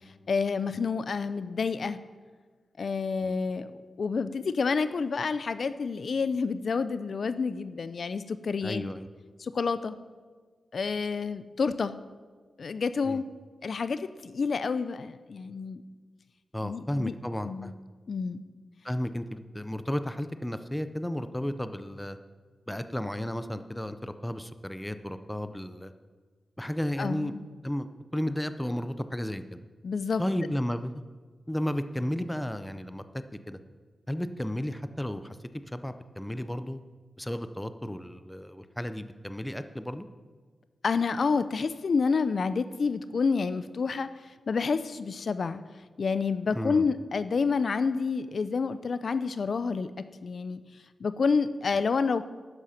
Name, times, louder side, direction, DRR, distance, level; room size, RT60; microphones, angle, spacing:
voice 1, 0.3-2.0 2.8-3.7 4.0-8.8 9.4-10.0 10.7-11.9 12.6-13.2 13.6-15.8 16.6-17.1 17.4-17.7 18.1-18.4 27.0-27.4 29.8-30.2 40.8-45.6 46.0-49.9 50.2-50.6 51.0-52.2, left 5 dB, 60° left, 13 dB, 0.5 m, -29 dB
voice 2, 8.6-9.1 13.0-13.2 16.5-17.7 18.8-22.2 22.7-25.9 26.6-27.3 27.6-27.9 28.1-29.6 30.2-30.9 31.5-33.6 34.1-35.4 35.7-36.8 37.2-40.1 46.5-46.8, left 1 dB, 5° left, 10 dB, 0.6 m, -33 dB
12.5 x 9.9 x 5.7 m, 1.4 s
wide cardioid pair, 120°, 0 cm